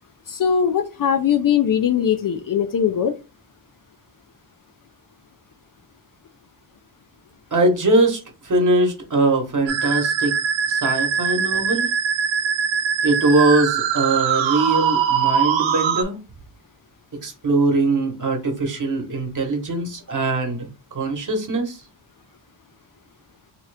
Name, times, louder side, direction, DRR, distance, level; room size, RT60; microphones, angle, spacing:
voice 1, 0.3-3.1, left 8 dB, 50° left, 8 dB, 0.4 m, -20 dB
voice 2, 7.5-8.2 8.4-10.3 10.7-11.9 13.0-16.2 17.2-21.8, right 2 dB, 40° right, 4 dB, 1.1 m, -21 dB
Musical instrument, 9.7-16.0, right 7 dB, 75° right, 0.6 m, -22 dB
3.6 x 2.9 x 3.3 m, 0.29 s
wide cardioid pair, 175°, 45 cm